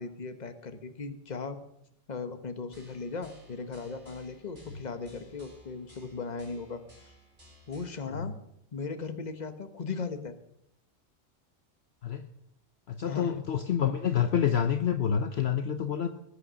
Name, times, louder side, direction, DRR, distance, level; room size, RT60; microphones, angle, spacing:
voice 1, 0.0-1.6 2.1-7.1 7.7-8.4 8.7-10.4 13.0-13.3, left 4 dB, 35° left, 9 dB, 1.3 m, -37 dB
sound 1, 2.7-8.1, right 1 dB, 40° right, 5.8 m, -57 dB
voice 2, 12.9-16.1, left 8 dB, 60° left, 8 dB, 1.0 m, -28 dB
20.0 x 8.4 x 6.3 m, 0.77 s
omnidirectional pair, 1.3 m